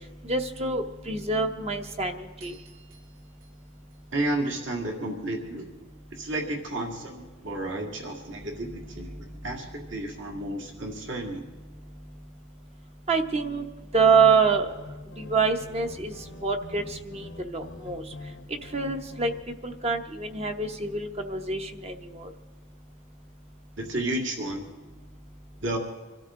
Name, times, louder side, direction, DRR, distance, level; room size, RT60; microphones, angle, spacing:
voice 1, 0.2-2.5 13.1-13.6 13.9-14.7 15.2-16.1 16.4-18.0 18.7-19.3 19.6-22.3, right 4 dB, 30° right, 6 dB, 0.9 m, -26 dB
sound 1, 2.4-5.0, right 4 dB, 85° right, 5.6 m, -58 dB
voice 2, 4.1-5.7 6.1-11.5 23.8-24.7 25.6-25.8, right 1 dB, 60° right, 1 dB, 2.2 m, -32 dB
sound 2, 14.0-19.4, left 2 dB, 65° left, 0.9 m, -45 dB
25.5 x 13.0 x 3.7 m, 1.2 s
head